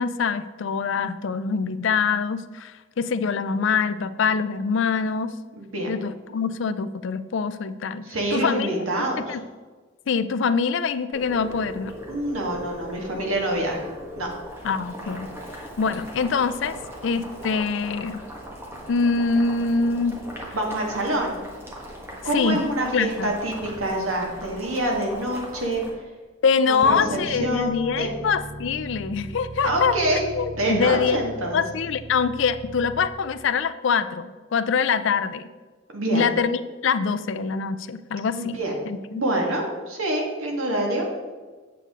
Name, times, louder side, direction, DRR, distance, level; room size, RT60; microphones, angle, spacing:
voice 1, 0.0-5.3 5.9-9.4 10.1-11.9 14.6-15.3 15.8-16.8 17.0-18.2 18.9-20.2 22.3-22.6 22.9-23.3 26.4-30.0 30.3-31.2 31.5-35.5 36.1-38.6 38.9-39.2, left 5 dB, 60° left, 13 dB, 0.4 m, -24 dB
voice 2, 5.6-5.9 8.0-9.4 12.1-13.8 14.2-14.3 20.5-21.4 22.2-25.8 26.7-28.2 29.6-30.3 30.5-31.6 35.9-36.3 38.3-38.7 39.1-41.1, right 1 dB, 85° right, 0 dB, 1.7 m, -26 dB
Boiling, 11.1-25.9, equal, 10° right, 1.3 m, -39 dB
sound 1, 26.8-33.1, right 1 dB, 45° right, 1.0 m, -38 dB
8.4 x 6.7 x 3.6 m, 1.4 s
head